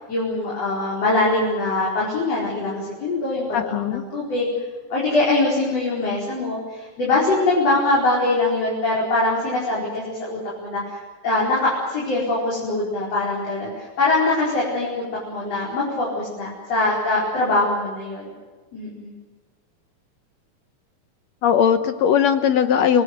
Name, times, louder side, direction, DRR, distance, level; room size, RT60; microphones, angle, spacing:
voice 1, 0.1-4.5 4.9-18.3 18.7-19.1, left 2 dB, 45° left, -6 dB, 6.1 m, -23 dB
voice 2, 3.5-4.0 21.4-23.0, left 8 dB, 70° left, 9 dB, 1.7 m, -19 dB
28.0 x 19.5 x 8.0 m, 1.3 s
omnidirectional pair, 4.0 m